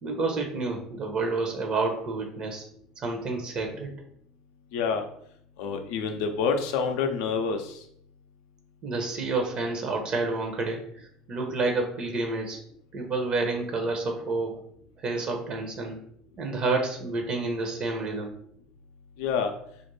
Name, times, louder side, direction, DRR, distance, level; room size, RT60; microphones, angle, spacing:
voice 1, 0.0-2.6 3.0-3.9 8.8-12.6 12.9-14.6 15.0-16.0 16.4-18.3, right 3 dB, 45° right, 2 dB, 0.7 m, -29 dB
voice 2, 4.7-5.0 5.6-7.7 19.2-19.5, left 5 dB, 75° left, 5 dB, 0.4 m, -27 dB
2.4 x 2.1 x 3.0 m, 0.66 s
hypercardioid pair, 80°, 2 cm